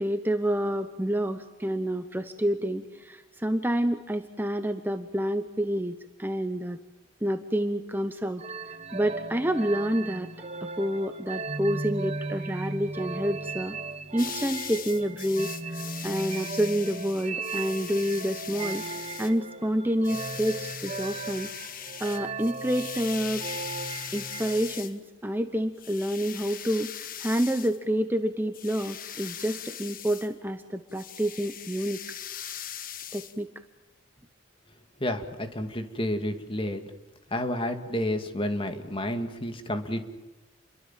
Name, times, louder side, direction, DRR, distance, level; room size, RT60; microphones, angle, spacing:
voice 1, 0.0-6.8 7.2-10.3 10.6-13.8 14.1-21.5 22.0-23.5 24.1-32.0 33.1-33.5, equal, 10° right, 8 dB, 1.0 m, -28 dB
sound 1, 8.4-24.8, right 3 dB, 30° right, 1.4 m, -37 dB
sound 2, 14.2-19.4 20.0-25.0 25.8-27.8 28.5-30.3 30.9-33.4, left 9 dB, 45° left, 1.5 m, -40 dB
voice 2, 35.0-36.8 37.3-40.0, left 1 dB, 25° left, 6 dB, 2.4 m, -30 dB
29.5 x 23.5 x 7.5 m, 1.1 s
head